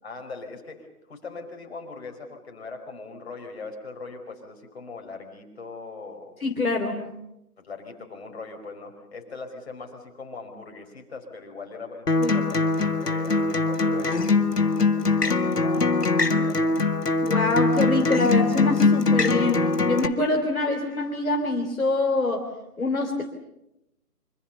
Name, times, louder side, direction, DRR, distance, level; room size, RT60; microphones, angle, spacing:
voice 1, 0.0-6.3 7.6-16.8, left 4 dB, 40° left, 3 dB, 5.0 m, -41 dB
voice 2, 6.4-7.1 12.2-12.3 17.2-22.5 22.8-23.2, left 2 dB, 60° left, 3 dB, 3.4 m, -25 dB
Acoustic guitar, 12.1-20.1, left 3 dB, 75° left, 2.1 m, -22 dB
26.0 x 26.0 x 6.9 m, 0.87 s
figure-of-eight pair, 155°, 47 cm